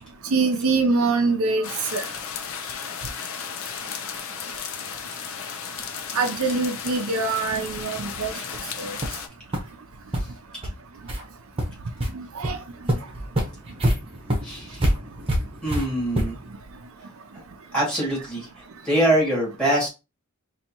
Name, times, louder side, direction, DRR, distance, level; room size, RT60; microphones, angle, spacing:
voice 1, 0.3-2.0 6.1-8.3 8.8-9.0 12.1-12.6, right 3 dB, 70° right, 0.5 m, -24 dB
sound 1, 1.6-9.3, left 7 dB, 65° left, 0.6 m, -34 dB
sound 2, 8.5-8.6 9.0-9.2 9.5-9.6 10.1-10.2 10.6-10.7 11.1-11.2 11.6-12.1 12.4-12.5 12.9-16.5, right 1 dB, 25° right, 1.0 m, -26 dB
voice 2, 14.4-14.8 15.6-16.4 17.7-19.9, right 1 dB, 5° left, 2.2 m, -24 dB
4.1 x 2.7 x 2.9 m
head